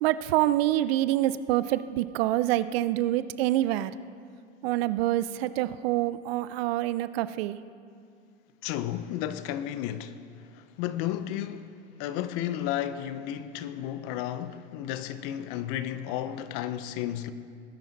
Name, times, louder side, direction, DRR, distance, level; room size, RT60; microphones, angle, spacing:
voice 1, 0.0-3.9 4.6-7.6, right 14 dB, 60° right, 0.6 m, -26 dB
voice 2, 8.6-10.2 10.5-11.7 12.0-17.3, left 11 dB, 50° left, 0.8 m, -33 dB
19.5 x 10.5 x 4.1 m
hypercardioid pair, 110°, 34 cm